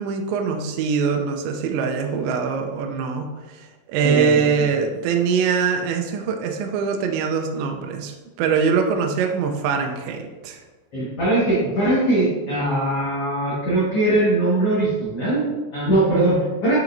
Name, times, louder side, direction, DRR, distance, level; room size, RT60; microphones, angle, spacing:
voice 1, 0.0-10.6, right 6 dB, 85° right, 4 dB, 2.8 m, -23 dB
voice 2, 4.0-4.7 10.9-16.8, right 1 dB, 90° left, -8 dB, 1.2 m, -21 dB
7.7 x 5.9 x 2.6 m, 1.2 s
omnidirectional pair, 5.2 m